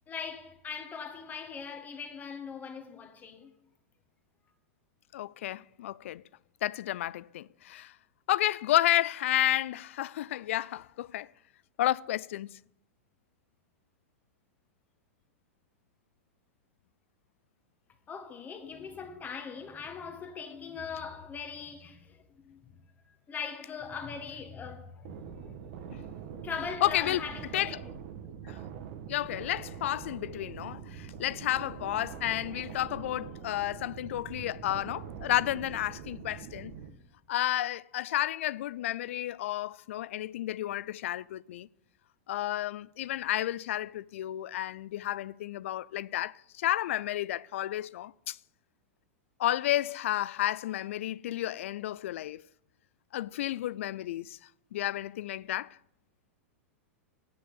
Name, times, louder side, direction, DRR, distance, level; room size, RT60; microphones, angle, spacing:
voice 1, 0.1-3.5 18.1-22.8 23.1-27.9, left 6 dB, 25° left, 1.7 m, -41 dB
voice 2, 5.1-6.2 6.6-7.9 8.3-11.3 11.8-12.5 26.8-27.2 27.5-27.8 28.4-28.6 29.1-36.7 37.3-41.7 42.3-48.4 49.4-52.4 53.1-54.4 54.7-55.8, left 13 dB, 70° left, 0.3 m, -31 dB
sound 1, 25.0-36.9, right 8 dB, 60° right, 1.3 m, -44 dB
10.0 x 6.7 x 8.2 m
hypercardioid pair, 105°, 7 cm